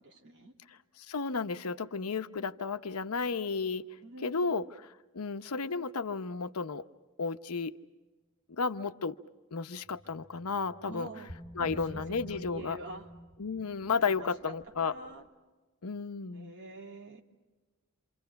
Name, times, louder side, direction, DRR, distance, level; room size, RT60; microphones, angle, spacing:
voice 1, 0.0-0.5 4.0-4.6 10.9-11.3 11.6-13.1 13.9-14.3 14.8-15.2 16.3-17.2, right 2 dB, 55° right, 1 dB, 2.7 m, -46 dB
voice 2, 0.7-3.9 4.2-4.6 5.1-6.8 7.2-7.7 8.5-9.2 9.5-11.1 11.6-12.8 13.4-15.0 15.8-16.5, left 4 dB, 85° left, 10 dB, 0.8 m, -33 dB
sound 1, 9.9-15.3, equal, 35° left, 3.3 m, -49 dB
28.0 x 27.5 x 5.8 m, 1.2 s
head